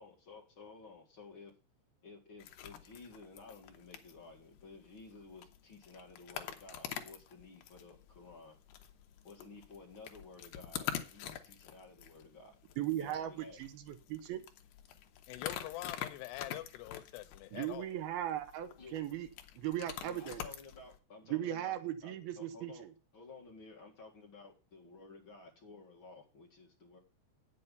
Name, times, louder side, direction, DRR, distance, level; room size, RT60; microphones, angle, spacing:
voice 1, 0.0-1.5 2.0-8.6 9.2-12.6 13.0-13.6 18.8-19.0 20.0-22.9 23.1-27.0, left 3 dB, 40° left, 1.9 m, -54 dB
sound 1, 2.4-21.0, left 11 dB, 70° left, 2.4 m, -47 dB
voice 2, 12.8-14.4 17.5-19.3 19.6-20.4 21.3-22.9, right 12 dB, 75° right, 2.5 m, -38 dB
voice 3, 15.3-18.0, left 16 dB, 90° left, 2.9 m, -45 dB
9.4 x 7.8 x 5.3 m
omnidirectional pair, 4.8 m